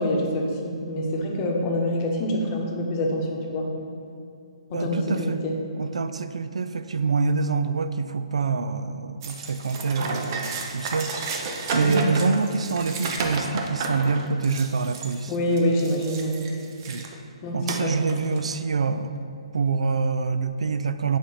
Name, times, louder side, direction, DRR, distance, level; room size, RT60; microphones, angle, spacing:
voice 1, 0.0-3.7 4.7-5.6 11.8-12.1 15.3-16.4 17.4-18.0, left 1 dB, 30° left, 0 dB, 0.9 m, -26 dB
voice 2, 4.7-5.4 5.8-11.1 11.7-15.3 16.9-17.1 17.5-19.1 19.5-21.2, right 4 dB, 85° right, 11 dB, 0.4 m, -26 dB
sound 1, 9.2-17.2 17.7-18.6, right 3 dB, 35° right, 0.6 m, -32 dB
8.3 x 3.3 x 5.6 m, 2.5 s
hypercardioid pair, 155°, 3 cm